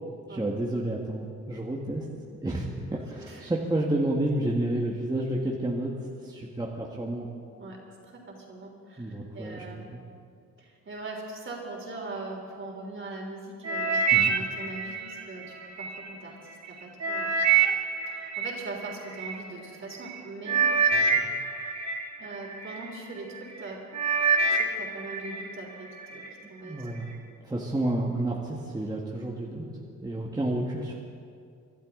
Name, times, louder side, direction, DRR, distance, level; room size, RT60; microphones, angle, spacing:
voice 1, 0.3-2.0 2.4-5.9 6.2-7.2 9.0-9.6 9.9-10.0 14.1-14.3 20.9-21.2 26.6-27.1 27.4-29.7 30.0-30.9, right 1 dB, 15° right, -3 dB, 1.7 m, -30 dB
voice 2, 7.6-9.0 9.3-9.9 10.6-16.4 16.6-17.3 18.1-20.7 22.2-23.8 24.5-27.1, right 2 dB, 40° right, 0 dB, 3.7 m, -41 dB
sound 1, 13.6-16.0 16.5-19.4 20.1-20.2 20.5-22.8 23.4-23.6 23.9-25.5 25.8-26.3 26.9-27.0, right 5 dB, 60° right, 1.7 m, -26 dB
24.5 x 12.0 x 3.9 m, 2.3 s
cardioid pair, 90°, 30 cm